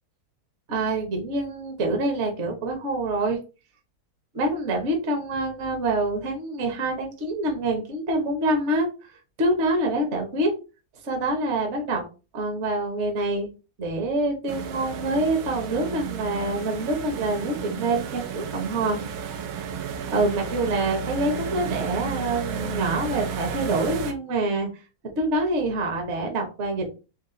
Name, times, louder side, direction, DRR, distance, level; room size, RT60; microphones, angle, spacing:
voice 1, 0.7-3.4 4.3-8.9 9.4-10.5 11.0-12.0 12.3-13.5 13.8-19.0 20.1-24.7 25.2-27.0, right 2 dB, 50° right, 2 dB, 0.9 m, -26 dB
sound 1, 14.5-24.1, right 6 dB, 85° right, 1.5 m, -32 dB
4.1 x 2.4 x 3.6 m, 0.32 s
omnidirectional pair, 2.2 m